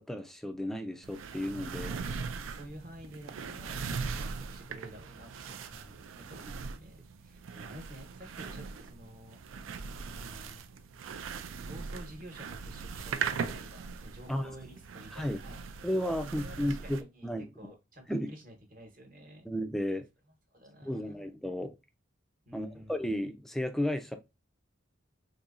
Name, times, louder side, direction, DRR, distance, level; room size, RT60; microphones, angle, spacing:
voice 1, 0.0-1.9 5.8-6.0 14.3-14.4 15.1-15.4 15.8-17.5 18.1-18.3 19.5-20.1 20.8-21.7 22.5-24.2, left 1 dB, ahead, 0.3 m, -33 dB
sound 1, 1.0-17.0, right 5 dB, 85° right, 0.4 m, -40 dB
voice 2, 1.9-5.6 6.2-9.4 10.0-10.6 11.6-15.6 16.2-17.3 17.6-19.5 20.5-21.2 22.5-23.0, equal, 45° right, 1.0 m, -50 dB
4.1 x 2.7 x 2.5 m
head